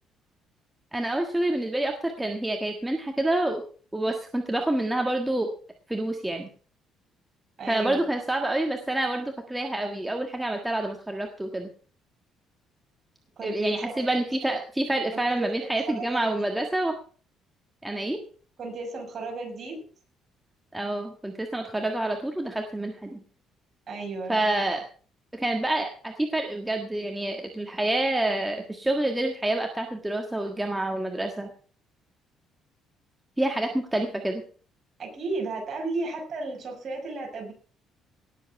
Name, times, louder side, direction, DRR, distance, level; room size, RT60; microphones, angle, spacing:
voice 1, 0.9-3.6 3.9-5.5 5.9-6.5 7.7-11.7 13.4-16.9 17.8-18.2 20.7-23.2 24.3-24.8 25.3-31.5 33.4-34.4, right 1 dB, 5° right, 3 dB, 1.5 m, -27 dB
voice 2, 7.6-8.0 13.4-14.0 15.1-16.3 18.6-19.8 23.9-24.4 35.0-37.5, right 3 dB, 35° right, 1 dB, 6.0 m, -34 dB
18.0 x 7.6 x 5.8 m, 0.42 s
cardioid pair, 140°, 0 cm